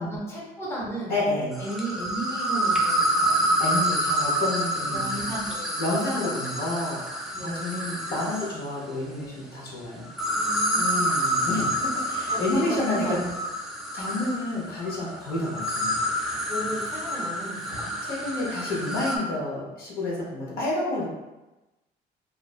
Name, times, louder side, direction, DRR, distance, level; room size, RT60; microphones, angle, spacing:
voice 1, 0.0-1.2 1.6-3.6 4.7-5.8 7.3-7.6 10.3-11.2 12.3-13.3 16.5-17.9, right 1 dB, 15° left, -6 dB, 0.8 m, -35 dB
voice 2, 1.1-1.6 3.6-5.3 5.8-10.1 10.7-13.2 13.9-16.0 18.0-21.1, left 2 dB, 65° left, -5 dB, 0.8 m, -29 dB
sound 1, 1.5-8.7 10.1-19.2, equal, ahead, 0.4 m, -28 dB
2.4 x 2.1 x 2.3 m, 1.1 s
cardioid pair, 110°, 17 cm